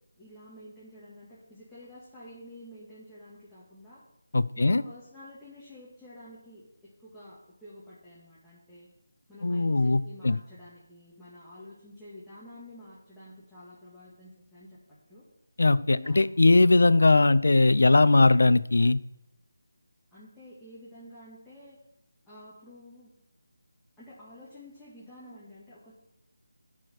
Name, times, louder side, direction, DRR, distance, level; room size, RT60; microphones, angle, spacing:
voice 1, 0.2-4.0 4.5-8.9 9.3-14.8 15.1-15.2 15.9-16.2 20.1-21.8 22.3-23.1 24.0-25.9, left 1 dB, 5° left, -11 dB, 1.8 m, -49 dB
voice 2, 4.3-4.8 9.4-10.4 15.6-19.0, left 2 dB, 70° left, 15 dB, 0.5 m, -20 dB
10.5 x 4.9 x 6.4 m, 0.86 s
figure-of-eight pair, 165°, 0 cm